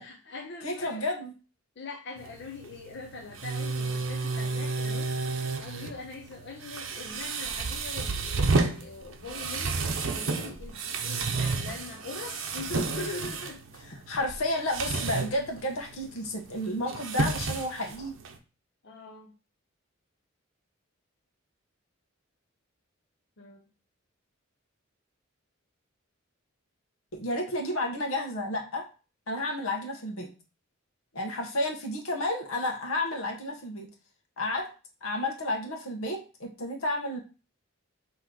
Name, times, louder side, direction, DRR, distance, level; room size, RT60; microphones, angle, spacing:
voice 1, 0.0-1.1 1.8-13.6 18.8-19.3 23.4-23.7, left 3 dB, 55° left, 2 dB, 0.7 m, -42 dB
voice 2, 0.6-1.3 14.1-18.1 27.1-28.8 29.3-30.3 31.1-33.9 34.4-34.7 35.0-37.2, left 1 dB, 90° left, 2 dB, 1.1 m, -31 dB
sound 1, 2.2-18.4, right 3 dB, 65° right, 0.7 m, -32 dB
4.6 x 3.0 x 3.8 m, 0.34 s
head